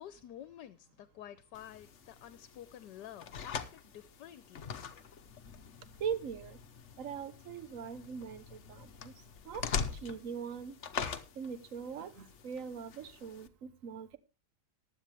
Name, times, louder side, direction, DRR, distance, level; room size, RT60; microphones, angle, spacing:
voice 1, 0.0-4.7, left 11 dB, 75° left, 1.4 m, -50 dB
sound 1, 1.5-13.5, left 6 dB, 50° left, 1.1 m, -43 dB
voice 2, 6.0-6.6 7.0-8.4 8.7-8.8 9.0-9.1 9.5-9.6 10.0-10.7 11.4-14.2, right 7 dB, 50° right, 1.4 m, -40 dB
15.0 x 11.0 x 3.4 m
omnidirectional pair, 1.9 m